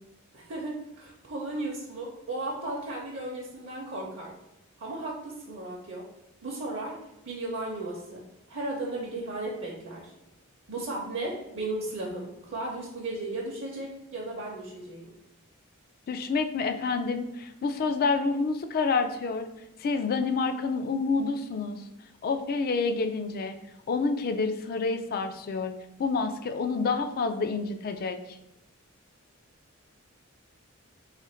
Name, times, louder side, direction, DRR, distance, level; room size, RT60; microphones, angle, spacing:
voice 1, 0.3-4.3 4.8-6.1 6.4-7.0 7.2-8.2 8.5-10.1 10.7-15.1, right 2 dB, 55° right, -2 dB, 0.6 m, -35 dB
voice 2, 16.1-19.5 19.8-21.8 22.2-23.6 23.9-25.7 26.0-28.2, left 4 dB, 45° left, 8 dB, 0.3 m, -28 dB
3.3 x 2.5 x 4.3 m, 0.88 s
head